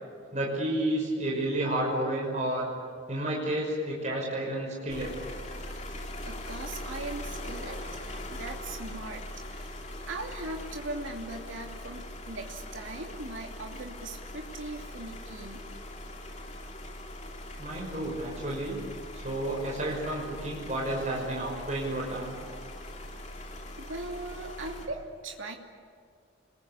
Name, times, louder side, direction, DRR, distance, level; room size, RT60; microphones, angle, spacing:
voice 1, 0.3-2.7 3.1-5.1 17.6-18.8 19.1-22.3, right 1 dB, 35° right, -2 dB, 5.7 m, -31 dB
sound 1, 4.9-24.9, left 1 dB, 35° left, 3.0 m, -41 dB
voice 2, 6.2-15.7 23.7-25.6, right 2 dB, 85° right, 2 dB, 2.8 m, -40 dB
28.5 x 21.5 x 8.7 m, 2.3 s
head